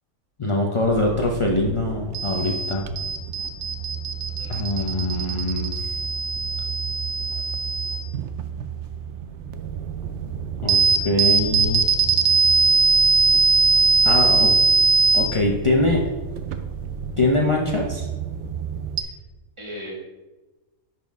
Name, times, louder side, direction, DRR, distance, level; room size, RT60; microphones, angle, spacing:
voice 1, 0.4-2.9 4.5-5.9 10.6-11.9 14.0-14.5 15.1-16.0 17.2-18.1, left 2 dB, 55° left, -1 dB, 0.3 m, -23 dB
sound 1, 0.8-19.0, right 4 dB, 65° right, 0.8 m, -22 dB
voice 2, 4.4-5.4 19.0-19.2 19.6-19.9, equal, 20° right, -4 dB, 1.9 m, -40 dB
10.0 x 4.3 x 3.5 m, 1.1 s
omnidirectional pair, 1.5 m